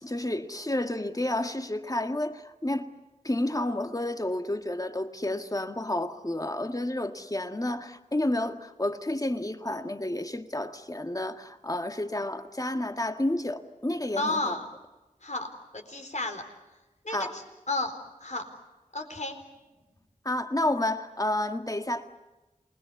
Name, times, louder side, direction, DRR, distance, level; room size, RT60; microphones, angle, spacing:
voice 1, 0.0-2.9 3.2-14.5 17.1-17.4 20.3-22.1, left 1 dB, 25° left, 7 dB, 1.8 m, -30 dB
voice 2, 14.2-14.6 15.2-15.5 15.7-16.4 17.0-18.5 18.9-19.4, left 2 dB, 60° left, 5 dB, 4.2 m, -32 dB
28.0 x 21.0 x 8.4 m, 1.1 s
wide cardioid pair, 50°, 14 cm